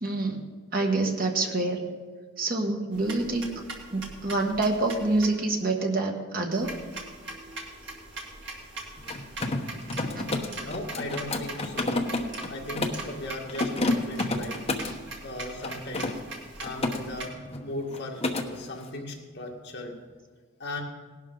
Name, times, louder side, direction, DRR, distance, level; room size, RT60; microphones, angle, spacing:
voice 1, 0.0-1.8 2.4-3.5 3.9-6.7, right 2 dB, 45° right, 2 dB, 1.5 m, -27 dB
sound 1, 2.9-5.3 6.5-17.3, right 2 dB, 60° right, 2.2 m, -41 dB
Mechanisms, 9.0-13.1 13.5-15.0 15.6-17.0 17.3-17.6 17.9-18.5, left 2 dB, 30° left, 1.0 m, -30 dB
voice 2, 10.6-12.0 12.5-14.6 15.2-16.1 16.6-17.3 17.6-18.2 18.5-20.0 20.6-20.8, left 1 dB, 55° left, 0 dB, 2.0 m, -37 dB
18.0 x 11.5 x 3.9 m, 1.5 s
head